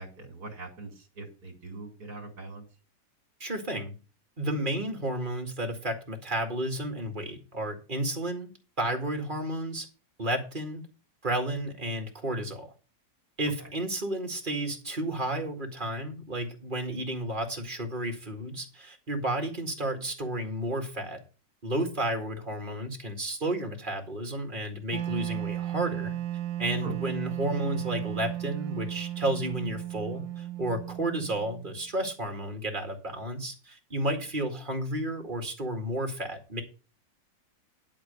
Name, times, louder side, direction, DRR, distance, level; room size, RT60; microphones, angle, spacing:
voice 1, 0.0-2.6 26.8-27.0, right 2 dB, 55° right, 2 dB, 2.9 m, -42 dB
voice 2, 3.4-4.0 4.4-8.5 8.8-9.9 10.2-10.8 11.2-12.7 13.4-21.2 21.6-26.2 26.6-36.6, right 1 dB, 25° right, 4 dB, 2.1 m, -32 dB
Wind instrument woodwind instrument, 24.9-31.9, right 12 dB, 80° right, 1.6 m, -35 dB
11.5 x 5.1 x 6.7 m, 0.34 s
omnidirectional pair, 2.0 m